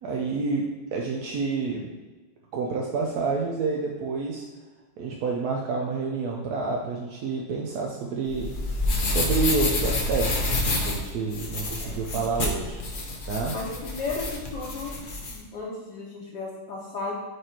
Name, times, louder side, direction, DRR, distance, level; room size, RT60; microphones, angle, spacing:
voice 1, 0.0-1.9 2.5-4.4 5.0-8.5 9.0-12.8 13.3-13.6, right 4 dB, 65° right, -1 dB, 1.0 m, -29 dB
sound 1, 8.3-15.4, left 2 dB, 80° left, 0.4 m, -28 dB
voice 2, 11.8-12.3 13.5-15.0 15.3-17.1, left 3 dB, 65° left, -4 dB, 1.4 m, -35 dB
4.9 x 4.5 x 4.4 m, 1.3 s
omnidirectional pair, 2.2 m